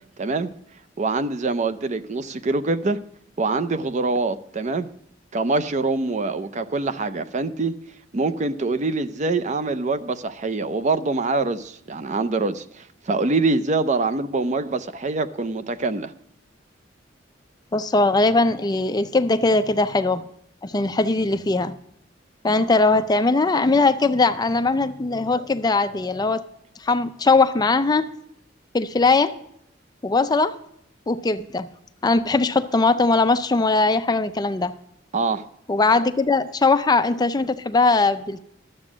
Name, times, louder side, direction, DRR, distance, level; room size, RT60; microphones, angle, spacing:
voice 1, 0.2-0.5 1.0-3.0 3.4-4.9 5.3-7.7 8.1-16.1 35.1-35.4, right 3 dB, 40° right, 0.5 m, -24 dB
voice 2, 17.7-20.2 20.6-21.7 22.4-26.4 26.8-28.1 28.7-29.3 30.0-30.5 31.1-31.7 32.0-34.7 35.7-38.4, left 3 dB, 20° left, 0.4 m, -20 dB
12.5 x 7.6 x 6.1 m
head